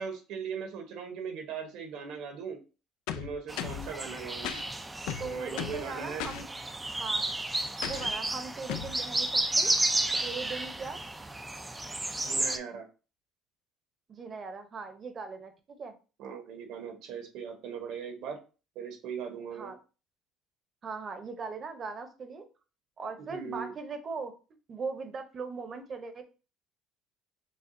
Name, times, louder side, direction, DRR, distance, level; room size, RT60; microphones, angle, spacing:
voice 1, 0.0-2.6 3.1-4.5 5.2-6.3 12.2-12.9 16.2-18.4 18.7-19.7 23.3-23.7, right 6 dB, 70° right, 5 dB, 1.1 m, -39 dB
sound 1, 3.1-3.9 4.4-4.6 5.1-5.8 6.2-6.4 7.8-8.1 8.7-8.9, left 10 dB, 80° left, 0.4 m, -36 dB
sound 2, 3.5-12.6, right 2 dB, 10° right, 0.3 m, -32 dB
voice 2, 5.2-6.5 6.9-7.3 7.8-9.7 10.2-11.0 14.1-15.9 19.5-19.8 20.8-22.5 23.0-24.3 24.7-26.2, right 4 dB, 35° right, 8 dB, 0.8 m, -39 dB
6.7 x 2.4 x 2.6 m, 0.33 s
cardioid pair, 130°, 0 cm